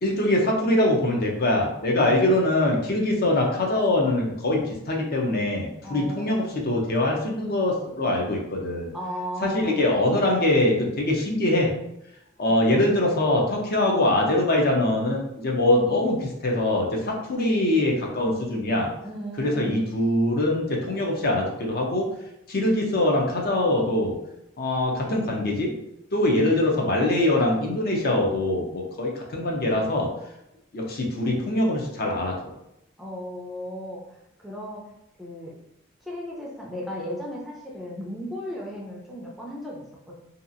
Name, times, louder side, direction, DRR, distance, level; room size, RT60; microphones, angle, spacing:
voice 1, 0.0-8.9 9.4-11.7 12.4-18.9 19.4-22.1 22.5-24.1 24.6-25.7 26.1-30.1 30.7-32.5, left 1 dB, 50° left, -1 dB, 0.5 m, -23 dB
voice 2, 5.8-6.4 8.9-9.8 19.0-19.8 33.0-34.2 34.4-34.9 35.2-35.5 36.0-40.2, equal, ahead, -4 dB, 0.4 m, -35 dB
2.7 x 2.4 x 2.5 m, 0.85 s
head